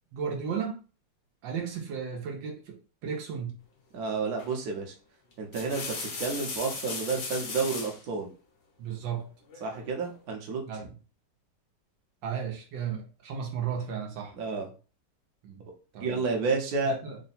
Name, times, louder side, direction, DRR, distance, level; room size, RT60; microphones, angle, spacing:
voice 1, 0.1-0.8 1.4-2.8 3.0-3.6 8.8-9.3 10.7-10.9 12.2-14.3 15.4-15.6 15.9-16.3 16.8-17.2, right 7 dB, 80° right, 1 dB, 1.5 m, -34 dB
voice 2, 3.9-4.9 5.4-8.3 9.6-10.6 14.4-14.7 16.0-16.9, right 4 dB, 60° right, 1 dB, 1.3 m, -30 dB
sound 1, 4.4-4.7 5.3-8.0 9.5-10.1, left 4 dB, 60° left, 1.4 m, -37 dB
3.8 x 2.1 x 4.1 m, 0.36 s
omnidirectional pair, 2.0 m